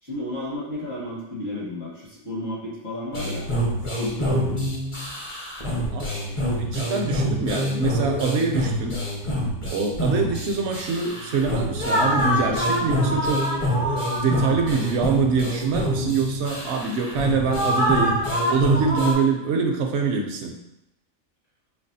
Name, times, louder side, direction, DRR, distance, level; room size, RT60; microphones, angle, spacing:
voice 1, 0.0-3.5 4.0-4.7, left 1 dB, 65° left, -8 dB, 2.0 m, -32 dB
sound 1, 3.1-19.1, equal, 30° left, 0.6 m, -25 dB
voice 2, 5.9-8.9 9.7-13.5 14.2-18.2 18.5-20.6, right 5 dB, 65° right, 2 dB, 0.7 m, -24 dB
5.2 x 2.2 x 2.6 m, 0.85 s
omnidirectional pair, 1.4 m